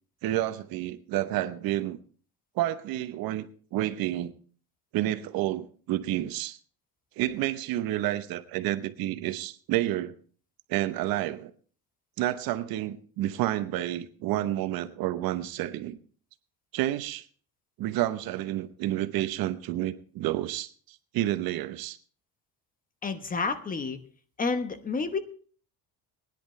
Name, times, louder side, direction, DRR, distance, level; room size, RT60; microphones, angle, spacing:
voice 1, 0.2-2.0 2.5-4.3 4.9-6.6 7.2-10.1 10.7-11.5 12.2-16.0 16.7-17.3 17.8-22.0, right 14 dB, 75° right, 12 dB, 0.9 m, -30 dB
voice 2, 23.0-24.0 24.4-25.2, left 4 dB, 25° left, 10 dB, 1.0 m, -29 dB
20.5 x 10.5 x 3.2 m, 0.43 s
cardioid pair, 145°, 35 cm